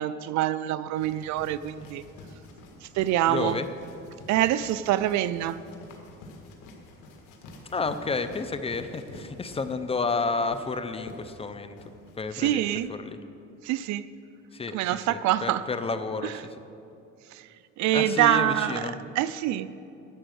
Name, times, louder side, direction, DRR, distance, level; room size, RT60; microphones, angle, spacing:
voice 1, 0.0-2.0 2.8-3.6 4.3-5.6 12.3-12.9 13.6-14.1 14.7-15.7 16.2-16.4 17.3-17.5 17.8-19.7, right 13 dB, 65° right, 15 dB, 0.5 m, -26 dB
sound 1, 0.9-12.6, left 2 dB, 80° left, 1.9 m, -48 dB
voice 2, 3.3-3.7 7.7-11.8 12.2-12.7 13.0-13.2 14.5-14.8 15.1-16.3 17.9-19.0, left 4 dB, 20° left, 10 dB, 0.5 m, -30 dB
11.5 x 8.5 x 6.3 m, 2.7 s
cardioid pair, 120°, 30 cm